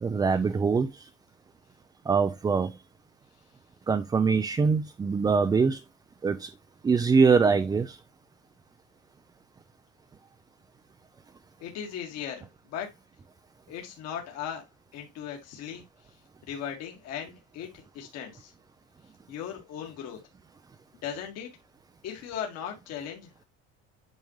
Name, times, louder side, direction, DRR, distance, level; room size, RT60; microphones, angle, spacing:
voice 1, 0.0-1.1 2.1-2.8 3.9-5.8 6.2-6.5 6.8-8.0, right 5 dB, 15° right, 0.4 m, -23 dB
voice 2, 11.6-12.9 13.7-14.6 14.9-15.8 16.5-18.5 19.3-20.2 21.0-21.5 22.0-23.4, left 8 dB, 60° left, 1.9 m, -37 dB
9.2 x 5.2 x 3.1 m
cardioid pair, 145°, 29 cm